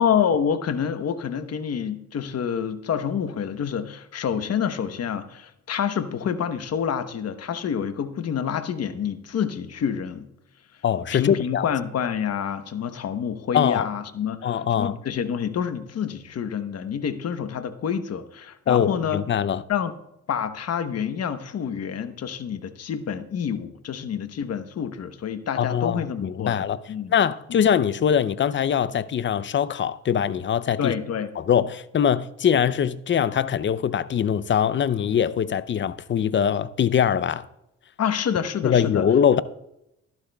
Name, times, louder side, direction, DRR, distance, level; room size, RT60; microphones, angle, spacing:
voice 1, 0.0-10.3 11.1-19.2 19.7-19.9 20.3-27.1 27.5-27.7 30.8-31.3 38.0-39.1, left 8 dB, 55° left, 1.0 m, -27 dB
voice 2, 10.8-11.7 13.5-13.9 14.4-15.0 18.7-19.6 25.6-26.8 27.1-30.9 31.4-37.5 38.6-39.4, left 8 dB, 40° left, 0.5 m, -22 dB
14.5 x 12.0 x 2.3 m
cardioid pair, 90°, 30 cm